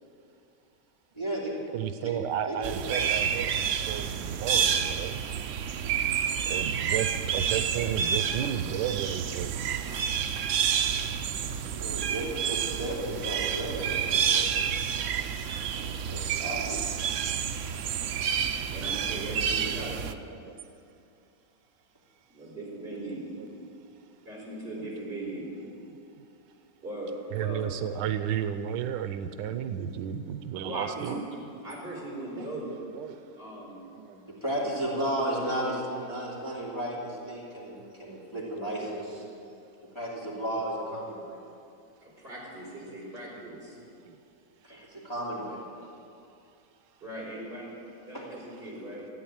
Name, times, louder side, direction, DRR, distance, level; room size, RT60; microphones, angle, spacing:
voice 1, 1.1-1.5 2.0-2.1 2.5-3.0 11.7-14.4 15.8-16.8 34.3-39.2 39.9-41.4 44.6-45.6 48.1-48.2, right 1 dB, 15° left, -6 dB, 2.7 m, -34 dB
voice 2, 1.7-5.2 6.5-10.3 11.6-11.7 12.7-12.8 13.3-13.4 13.8-14.4 19.2-20.6 23.4-23.7 25.7-26.0 27.3-31.2 31.5-31.6 32.3-33.2 33.9-34.3 34.9-35.1 36.0-36.2 36.7-36.8 37.3-37.4 37.8-38.3 39.2-39.5 41.2-41.3 43.5-44.2, right 9 dB, 90° right, 10 dB, 1.3 m, -34 dB
sound 1, 2.6-20.1, right 7 dB, 65° right, 0.8 m, -29 dB
voice 3, 18.7-20.0 22.3-23.2 24.2-25.5 26.8-27.6 30.6-31.1 31.6-32.7 33.4-33.8 34.6-34.8 42.0-43.8 44.7-44.9 47.0-47.6 48.1-49.1, right 1 dB, 35° right, -5 dB, 4.8 m, -39 dB
14.0 x 9.1 x 8.7 m, 2.6 s
omnidirectional pair, 1.9 m